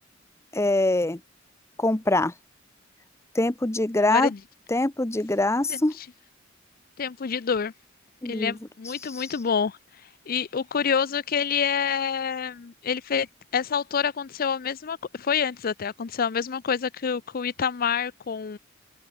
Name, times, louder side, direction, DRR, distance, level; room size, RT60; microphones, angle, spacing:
voice 1, 0.5-1.2 1.8-2.3 3.3-4.3 4.7-5.9 8.2-8.6 9.1-9.3, left 2 dB, 15° left, 0.7 m, -23 dB
voice 2, 5.7-6.1 7.0-7.7 8.2-9.8 10.3-13.3 13.5-18.6, left 6 dB, 45° left, 0.5 m, -27 dB
open air
head